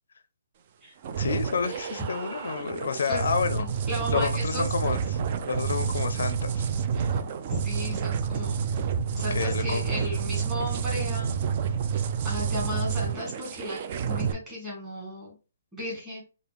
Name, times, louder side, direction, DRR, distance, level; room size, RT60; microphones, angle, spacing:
sound 1, 1.0-14.3, right 7 dB, 25° right, 0.3 m, -29 dB
voice 1, 1.2-3.6 4.1-5.2 5.5-6.7 9.3-9.8, left 5 dB, 60° left, 0.5 m, -29 dB
voice 2, 3.6-4.6 6.9-7.2 7.5-8.7 9.2-11.4 12.2-13.8 14.0-15.4 15.7-16.2, left 1 dB, 10° right, 1.5 m, -35 dB
4.8 x 2.3 x 3.3 m
hypercardioid pair, 180°, 0 cm